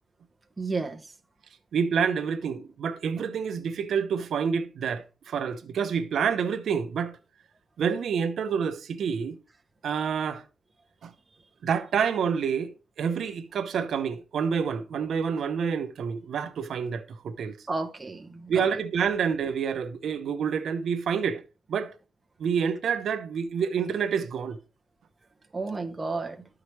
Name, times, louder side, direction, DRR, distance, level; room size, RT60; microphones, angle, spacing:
voice 1, 0.6-1.1 17.7-18.6 25.5-26.4, right 3 dB, 20° right, 0.9 m, -32 dB
voice 2, 1.7-7.2 7.8-9.4 9.8-10.4 11.0-11.1 11.6-12.7 13.0-17.6 18.5-21.4 21.7-21.9 22.4-24.6, right 6 dB, 75° right, 0.8 m, -28 dB
13.0 x 4.8 x 3.2 m
wide cardioid pair, 140°, 0 cm